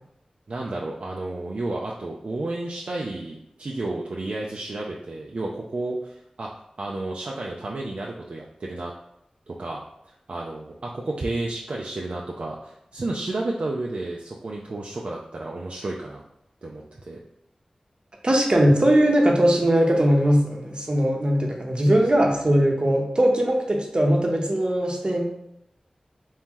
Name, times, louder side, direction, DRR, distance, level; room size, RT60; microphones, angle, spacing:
voice 1, 0.5-6.5 6.8-8.9 9.5-16.2 16.6-17.2 21.8-22.0, right 2 dB, 65° right, -2 dB, 0.4 m, -32 dB
voice 2, 18.2-25.3, equal, 45° right, 1 dB, 0.8 m, -20 dB
2.9 x 2.6 x 3.6 m, 0.81 s
cardioid pair, 45°, 2 cm